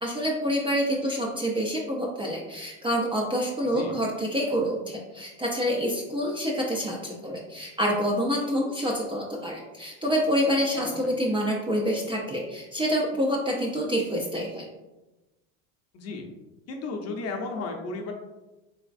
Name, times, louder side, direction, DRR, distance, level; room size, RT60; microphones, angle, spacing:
voice 1, 0.0-14.7, equal, 15° right, -2 dB, 0.4 m, -27 dB
voice 2, 15.9-16.3 16.7-18.1, left 3 dB, 40° left, 2 dB, 0.6 m, -34 dB
3.4 x 2.9 x 2.5 m, 1.1 s
supercardioid pair, 105°, 38 cm